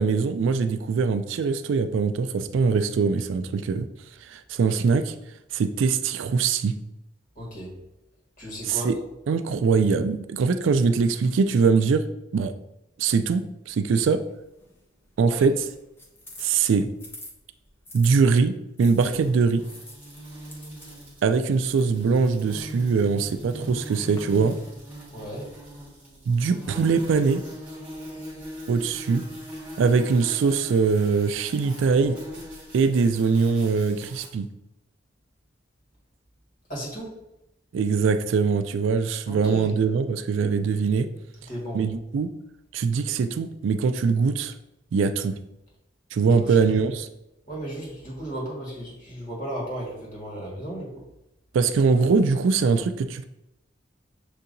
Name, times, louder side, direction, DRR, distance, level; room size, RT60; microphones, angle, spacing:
voice 1, 0.0-3.9 4.2-5.1 5.5-6.8 8.7-9.0 9.3-12.1 12.3-12.5 13.0-14.2 15.2-15.6 16.4-16.9 17.9-19.7 21.2-24.6 26.3-27.4 28.7-29.3 29.8-32.2 32.7-34.5 37.7-41.1 41.7-42.3 42.7-44.5 44.9-45.4 46.1-47.1 51.5-53.2, right 5 dB, 75° right, 10 dB, 0.3 m, -22 dB
voice 2, 7.3-7.8 8.4-8.9 15.2-15.5 25.1-25.5 36.7-37.2 39.3-39.8 41.5-41.8 46.2-46.6 47.5-51.0, equal, 40° left, -5 dB, 1.6 m, -35 dB
sound 1, 14.0-18.2 18.8-24.2, left 1 dB, 10° left, 0.6 m, -49 dB
sound 2, 18.8-34.3, equal, 10° right, 1.3 m, -41 dB
6.7 x 2.7 x 2.6 m, 0.89 s
head